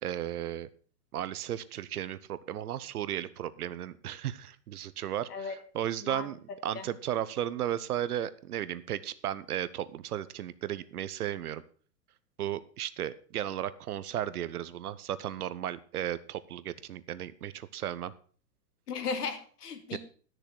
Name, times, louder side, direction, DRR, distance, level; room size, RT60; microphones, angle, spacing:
voice 1, 0.0-0.7 1.1-11.6 12.4-18.1 19.9-20.0, right 11 dB, 60° right, 16 dB, 0.9 m, -35 dB
voice 2, 18.9-20.0, left 5 dB, 65° left, 8 dB, 2.4 m, -35 dB
12.5 x 6.6 x 6.2 m, 0.43 s
hypercardioid pair, 150°, 50 cm